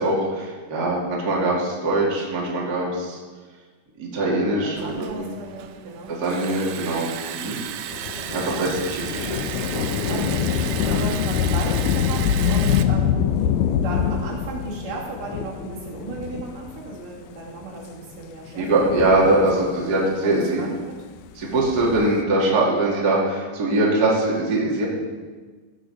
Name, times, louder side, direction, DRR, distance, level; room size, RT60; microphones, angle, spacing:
voice 1, 0.0-3.2 4.0-5.3 6.1-7.6 8.3-10.2 10.8-11.0 18.6-20.6 21.4-24.8, right 2 dB, 30° right, -4 dB, 2.2 m, -22 dB
voice 2, 4.6-6.1 8.6-9.3 10.1-10.5 10.8-13.5 13.8-19.1 19.6-21.0, right 3 dB, 65° right, -5 dB, 4.0 m, -35 dB
Liquid, 4.8-12.8, right 11 dB, 85° right, 1.7 m, -34 dB
Thunder / Rain, 7.9-16.9 17.6-17.7 18.7-19.9 21.5-22.2, left 8 dB, 80° left, 2.1 m, -25 dB
16.5 x 6.8 x 5.2 m, 1.4 s
omnidirectional pair, 4.2 m